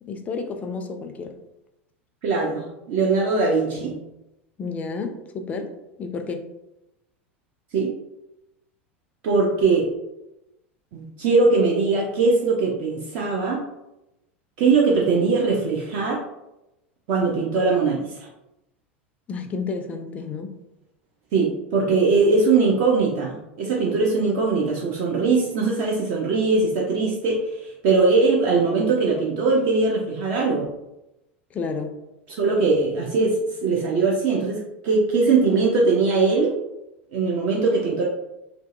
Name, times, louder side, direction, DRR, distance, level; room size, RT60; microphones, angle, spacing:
voice 1, 0.0-1.3 4.6-5.7 6.0-6.4 19.3-20.5 31.5-32.0, left 4 dB, 20° left, 6 dB, 0.3 m, -31 dB
voice 2, 2.2-4.0 7.7-7.9 9.2-9.9 10.9-13.6 14.6-16.2 17.1-18.3 21.3-30.7 32.3-36.5 37.1-38.0, right 4 dB, 45° right, -2 dB, 0.4 m, -21 dB
2.5 x 2.1 x 2.5 m, 0.91 s
figure-of-eight pair, 80°, 7 cm